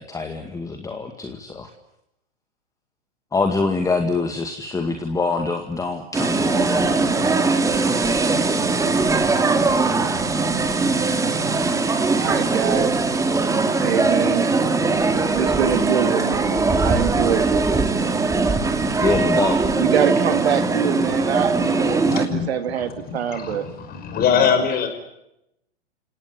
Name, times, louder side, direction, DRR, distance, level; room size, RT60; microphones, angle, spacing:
voice 1, 0.0-1.7 3.3-7.5 19.0-19.6, left 3 dB, 10° left, 5 dB, 2.1 m, -25 dB
sound 1, 6.1-22.3, right 3 dB, 10° right, 2.4 m, -20 dB
voice 2, 12.1-12.9 13.8-14.5 15.3-17.9 19.7-23.7, right 8 dB, 70° right, 9 dB, 2.8 m, -24 dB
voice 3, 22.1-22.5 22.8-22.9 23.3-24.9, left 7 dB, 25° left, 8 dB, 5.6 m, -22 dB
30.0 x 17.5 x 9.7 m, 0.85 s
hypercardioid pair, 115°, 33 cm